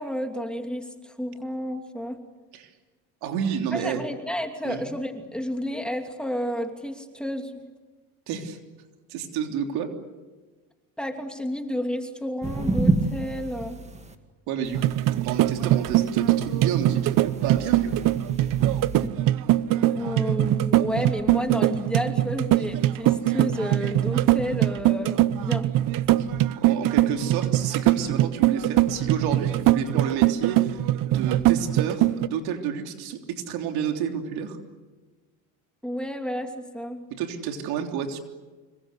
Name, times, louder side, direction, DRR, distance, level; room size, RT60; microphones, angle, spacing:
voice 1, 0.0-2.2 3.7-7.5 11.0-13.8 19.9-25.7 35.8-37.0, equal, ahead, 4 dB, 2.9 m, -31 dB
voice 2, 3.2-4.1 4.6-4.8 8.3-8.6 9.1-9.9 14.5-14.8 15.2-18.1 26.2-34.6 37.1-38.2, right 8 dB, 65° right, 5 dB, 3.4 m, -30 dB
sound 1, 12.4-14.1 14.6-19.1, right 2 dB, 15° right, 2.1 m, -30 dB
sound 2, 14.7-32.3, right 14 dB, 50° right, 0.9 m, -22 dB
26.0 x 22.5 x 8.2 m, 1.3 s
supercardioid pair, 110°, 40 cm